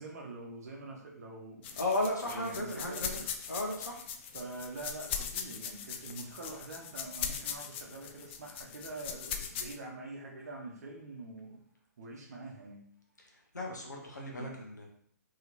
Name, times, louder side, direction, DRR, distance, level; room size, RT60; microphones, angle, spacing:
voice 1, 0.0-1.8 2.2-3.3 4.3-11.7 12.0-12.9 14.4-14.6, right 2 dB, 65° right, 1 dB, 0.7 m, -45 dB
sound 1, 1.6-9.8, left 7 dB, 40° left, 0.3 m, -40 dB
voice 2, 1.8-3.2 3.5-4.0 13.3-14.9, left 1 dB, 90° left, 0 dB, 0.8 m, -35 dB
2.9 x 2.8 x 2.5 m, 0.66 s
figure-of-eight pair, 120°, 9 cm